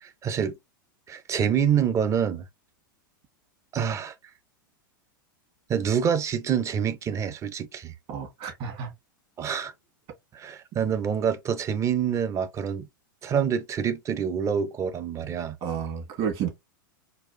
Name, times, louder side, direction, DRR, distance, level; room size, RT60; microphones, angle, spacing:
voice 1, 0.0-0.6 1.1-2.4 3.7-4.1 5.7-7.9 9.4-9.7 10.3-12.9 13.2-15.6, right 8 dB, 25° right, 0.6 m, -26 dB
voice 2, 8.1-8.9 15.6-16.5, right 7 dB, 45° right, 1.6 m, -31 dB
4.0 x 2.4 x 2.5 m
hypercardioid pair, 105°, 11 cm